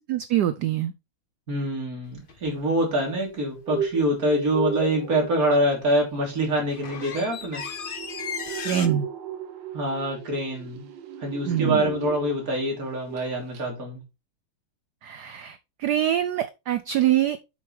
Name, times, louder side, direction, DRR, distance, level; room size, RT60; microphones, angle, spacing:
voice 1, 0.1-0.9 8.6-9.1 11.5-11.8 15.0-17.4, right 11 dB, 90° right, 0.9 m, -24 dB
voice 2, 1.5-7.6 9.7-10.9 11.2-14.0, right 1 dB, 40° right, 3.5 m, -25 dB
sound 1, 2.3-2.4 6.0-6.1 6.4-8.9, left 6 dB, 70° left, 0.5 m, -35 dB
sound 2, 3.4-12.7 13.0-13.3 13.5-13.6, right 6 dB, 65° right, 1.6 m, -36 dB
8.3 x 6.3 x 3.2 m
omnidirectional pair, 2.4 m